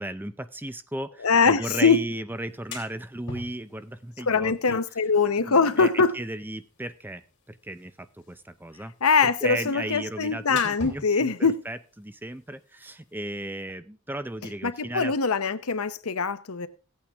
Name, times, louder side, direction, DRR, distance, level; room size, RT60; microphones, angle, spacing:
voice 1, 0.0-4.8 5.4-8.9 9.2-11.3 11.7-15.1, right 1 dB, 10° right, 0.5 m, -35 dB
voice 2, 1.2-2.0 4.3-6.1 9.0-11.5 14.6-16.7, left 5 dB, 80° left, 0.8 m, -22 dB
sound 1, 2.4-13.6, left 3 dB, 55° left, 3.0 m, -48 dB
16.0 x 8.6 x 3.5 m
head